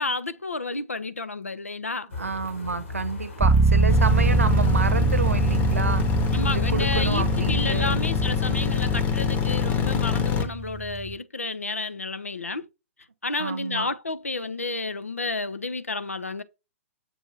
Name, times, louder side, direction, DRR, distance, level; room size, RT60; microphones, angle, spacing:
voice 1, 0.0-2.1 6.3-12.6 13.2-16.4, left 3 dB, 85° left, 0.4 m, -31 dB
sound 1, 2.1-7.5, left 3 dB, 70° left, 1.3 m, -38 dB
voice 2, 2.1-8.0 13.4-13.9, right 4 dB, 80° right, 0.7 m, -29 dB
sound 2, 3.4-11.1, right 3 dB, 10° right, 0.5 m, -24 dB
sound 3, 3.9-10.5, left 6 dB, 25° left, 0.9 m, -25 dB
6.9 x 2.6 x 2.9 m
figure-of-eight pair, 115°, 7 cm